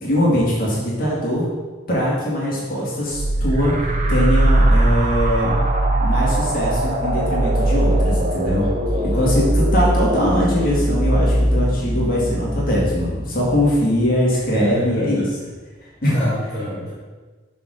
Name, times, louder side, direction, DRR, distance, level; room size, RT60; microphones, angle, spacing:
voice 1, 0.0-1.5 1.9-5.6 6.0-8.7 9.0-15.4 16.0-16.3, equal, 50° left, -6 dB, 2.1 m, -21 dB
sound 1, 3.1-14.5, right 1 dB, 40° right, 0.9 m, -20 dB
voice 2, 8.5-9.3 14.5-15.0 16.1-16.9, left 1 dB, 15° left, -11 dB, 2.1 m, -29 dB
6.7 x 3.9 x 6.4 m, 1.4 s
head